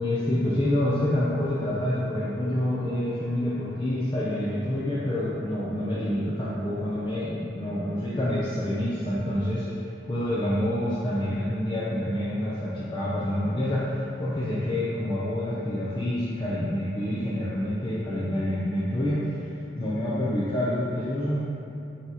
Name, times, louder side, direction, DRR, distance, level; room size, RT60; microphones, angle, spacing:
voice 1, 0.0-9.7 10.1-19.4 19.7-21.4, left 1 dB, 25° left, -9 dB, 0.9 m, -27 dB
9.8 x 3.3 x 4.2 m, 2.8 s
head